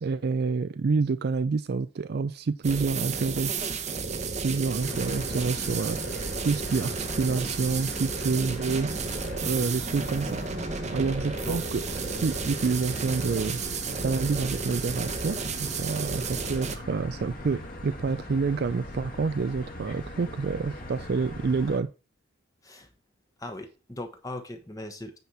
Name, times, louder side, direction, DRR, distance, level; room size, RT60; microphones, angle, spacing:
voice 1, 0.0-3.5 4.4-6.2 6.4-8.9 9.4-10.4 10.9-13.6 14.0-21.9, right 4 dB, 50° right, 13 dB, 0.4 m, -28 dB
sound 1, 2.6-16.8, right 4 dB, 35° right, 0.9 m, -32 dB
sound 2, 4.8-21.8, left 1 dB, 45° left, 2.1 m, -40 dB
voice 2, 23.4-25.2, left 1 dB, 15° left, 6 dB, 1.1 m, -39 dB
9.4 x 4.3 x 5.5 m, 0.33 s
head